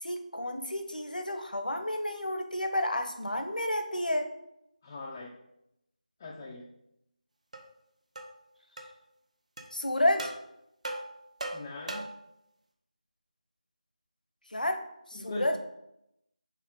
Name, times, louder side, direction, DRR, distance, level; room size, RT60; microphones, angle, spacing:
voice 1, 0.0-4.3 9.7-10.3 14.5-14.8 15.1-15.6, left 1 dB, 80° left, 6 dB, 1.0 m, -30 dB
voice 2, 4.8-5.3 6.2-6.7 11.5-12.0 15.1-15.6, left 2 dB, 15° left, -3 dB, 0.5 m, -40 dB
sound 1, 7.5-7.6 8.2-8.3 8.8-8.9 9.6-9.7 10.2-10.4 10.8-12.3, right 2 dB, 55° right, 1.0 m, -38 dB
4.8 x 4.1 x 5.3 m, 0.83 s
figure-of-eight pair, 165°, 4 cm